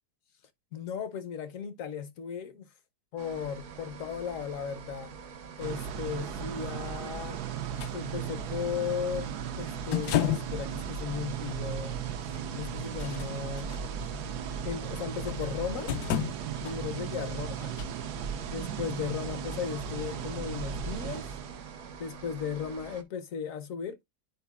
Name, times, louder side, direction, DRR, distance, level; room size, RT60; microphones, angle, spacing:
voice 1, 0.7-2.7 3.1-5.1 5.6-7.4 7.9-12.0 12.5-13.7 14.6-15.9 16.6-17.8 18.5-21.3 22.0-24.0, left 7 dB, 60° left, 1.0 m, -36 dB
sound 1, 3.2-23.0, right 6 dB, 55° right, 1.0 m, -46 dB
sound 2, 5.6-22.0, right 7 dB, 75° right, 1.2 m, -36 dB
sound 3, 7.8-7.9 9.9-10.6 11.5-11.6 12.8-13.8 15.3-15.5 15.9-16.8 17.8-17.9, left 10 dB, 80° left, 1.2 m, -30 dB
9.3 x 4.7 x 2.3 m
omnidirectional pair, 1.8 m